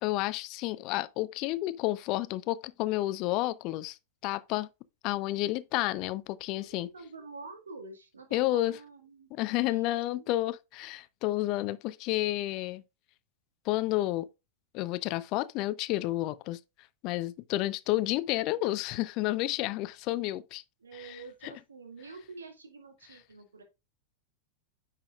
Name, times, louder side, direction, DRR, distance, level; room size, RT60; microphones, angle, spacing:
voice 1, 0.0-4.0 4.2-4.7 5.0-6.9 8.3-8.8 9.3-12.8 13.7-14.3 14.7-16.6 17.0-20.6 21.0-21.2 21.4-21.5, left 16 dB, 40° left, 0.5 m, -30 dB
voice 2, 6.5-10.3 20.8-23.6, right 3 dB, 75° right, 1.7 m, -48 dB
9.6 x 5.8 x 2.4 m
figure-of-eight pair, 90°, 0 cm